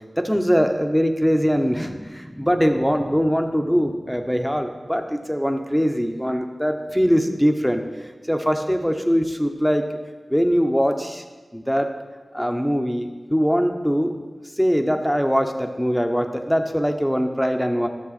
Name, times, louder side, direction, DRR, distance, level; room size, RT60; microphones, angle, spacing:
voice 1, 0.2-7.8 8.3-9.9 10.3-11.2 11.5-11.9 12.3-14.2 14.6-17.9, equal, 5° left, 5 dB, 0.8 m, -22 dB
11.5 x 6.7 x 4.1 m, 1.3 s
wide cardioid pair, 55°, 0 cm